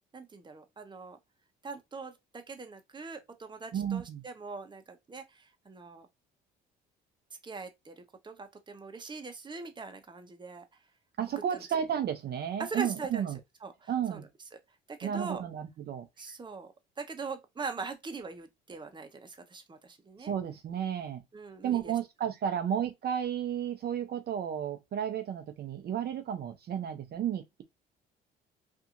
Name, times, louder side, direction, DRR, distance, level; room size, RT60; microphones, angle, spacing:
voice 1, 0.1-1.2 1.6-6.1 7.4-10.6 12.6-13.3 13.6-14.3 14.9-15.4 16.2-20.3 21.3-22.0, right 4 dB, 20° right, 0.8 m, -42 dB
voice 2, 3.7-4.2 11.2-13.4 13.9-14.2 15.0-16.1 20.2-21.2 21.6-27.6, right 9 dB, 50° right, 0.6 m, -32 dB
2.7 x 2.6 x 2.5 m
supercardioid pair, 70°, 21 cm